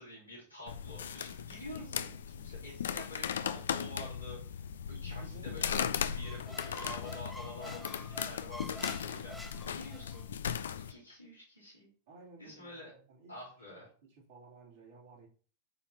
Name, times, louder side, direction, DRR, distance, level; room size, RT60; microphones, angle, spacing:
voice 1, 0.0-10.4 10.9-11.9 12.4-12.9 13.3-13.9, left 1 dB, 90° right, -8 dB, 3.6 m, -49 dB
sound 1, 0.7-10.9, left 8 dB, 65° left, 0.5 m, -37 dB
voice 2, 5.2-5.6 10.1-10.4 12.1-13.3 14.0-15.3, right 3 dB, 55° right, -4 dB, 3.3 m, -56 dB
Squeak, 6.2-10.2, equal, ahead, 0.8 m, -48 dB
12.5 x 4.4 x 2.9 m, 0.41 s
figure-of-eight pair, 90°, 0 cm